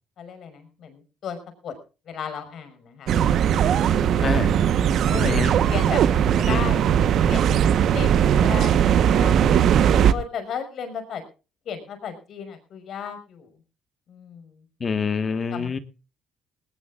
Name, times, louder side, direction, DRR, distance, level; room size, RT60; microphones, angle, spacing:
voice 1, 0.2-1.4 1.6-1.8 2.1-3.1 5.1-5.4 5.7-6.9 7.3-7.6 7.9-9.7 10.1-11.2 11.7-13.5 14.1-14.6 15.5-15.8, left 7 dB, 65° left, 8 dB, 5.6 m, -35 dB
sound 1, 3.1-10.1, right 9 dB, 65° right, 1.1 m, -19 dB
voice 2, 14.8-15.8, left 5 dB, 40° left, 11 dB, 1.4 m, -26 dB
19.5 x 19.0 x 2.5 m, 0.34 s
cardioid pair, 85°, 0 cm